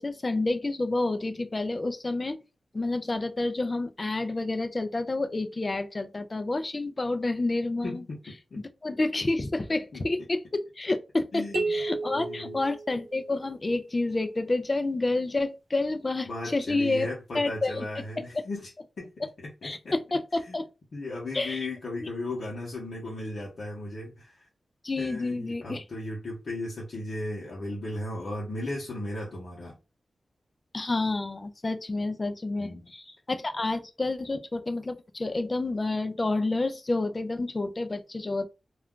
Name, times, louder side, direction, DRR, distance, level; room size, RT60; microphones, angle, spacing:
voice 1, 0.0-2.4 2.7-8.0 8.6-11.4 11.7-17.1 17.3-17.9 18.3-18.4 19.6-20.7 21.3-21.7 22.0-22.1 24.8-25.8 30.7-38.5, left 2 dB, 25° left, 0.3 m, -29 dB
voice 2, 7.8-8.6 9.9-10.0 11.3-11.8 12.1-12.6 16.3-18.7 19.0-19.9 20.5-20.6 20.9-24.5 25.0-29.7 32.6-32.9, left 2 dB, 60° left, 0.7 m, -36 dB
sound 1, 11.5-13.5, right 3 dB, 80° right, 0.6 m, -33 dB
2.3 x 2.3 x 3.6 m
wide cardioid pair, 170°, 0 cm